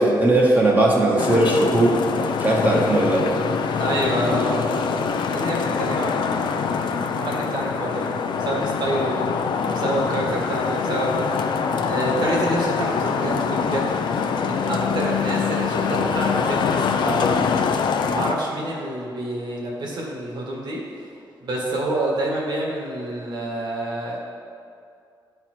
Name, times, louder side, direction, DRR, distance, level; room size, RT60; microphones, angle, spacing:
voice 1, 0.0-2.0 2.4-3.2, right 2 dB, 20° right, -3 dB, 0.9 m, -18 dB
Traffic noise roadway noise, 1.2-18.3, left 6 dB, 75° left, 0.5 m, -24 dB
voice 2, 3.8-8.1 8.4-9.2 9.6-20.8 21.4-24.2, right 1 dB, 65° right, -2 dB, 1.8 m, -28 dB
11.5 x 4.4 x 4.5 m, 2.4 s
wide cardioid pair, 150°, 8 cm